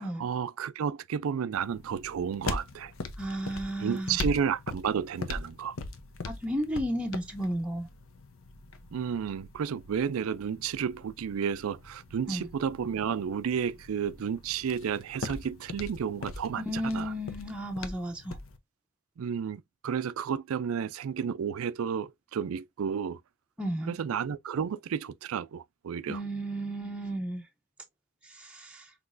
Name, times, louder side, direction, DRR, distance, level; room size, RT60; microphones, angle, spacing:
voice 1, 0.0-2.9 3.8-5.8 8.9-17.1 19.2-23.2 23.9-26.2, right 7 dB, 80° right, 0.4 m, -32 dB
sound 1, 1.5-18.6, left 3 dB, 75° left, 0.7 m, -41 dB
voice 2, 3.2-4.2 6.3-7.9 12.3-12.5 16.7-18.4 23.6-24.0 26.1-27.5 28.2-28.9, equal, 5° right, 0.6 m, -33 dB
5.9 x 3.0 x 2.5 m
head